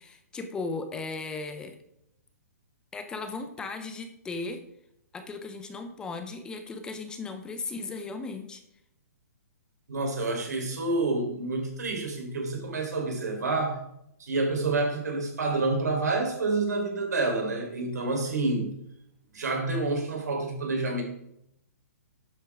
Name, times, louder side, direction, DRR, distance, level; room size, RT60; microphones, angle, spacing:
voice 1, 0.0-1.8 2.9-4.6 5.1-8.6, left 3 dB, 10° left, 7 dB, 0.7 m, -36 dB
voice 2, 9.9-13.8 14.2-18.7 19.3-21.0, right 3 dB, 90° right, 2 dB, 3.6 m, -28 dB
12.0 x 8.3 x 3.5 m, 0.77 s
hypercardioid pair, 160°, 9 cm